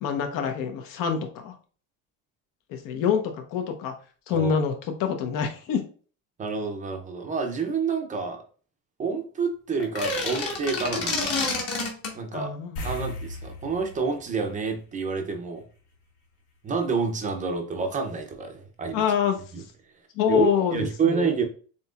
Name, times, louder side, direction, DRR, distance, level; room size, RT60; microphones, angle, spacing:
voice 1, 0.0-1.5 2.7-3.9 4.3-5.8 12.3-12.8 18.9-19.4 20.2-21.3, left 7 dB, 60° left, 5 dB, 1.1 m, -26 dB
voice 2, 6.4-8.4 9.0-11.3 12.1-12.5 12.8-15.6 16.6-19.1 19.5-19.6 20.3-21.4, right 5 dB, 20° right, 4 dB, 0.6 m, -28 dB
sound 1, 9.8-12.2, left 3 dB, 40° left, 1.4 m, -28 dB
sound 2, 12.8-15.5 15.8-16.0 18.9-19.0 19.3-19.4, left 1 dB, 90° left, 1.8 m, -38 dB
7.5 x 2.9 x 2.4 m, 0.39 s
cardioid pair, 175°, 37 cm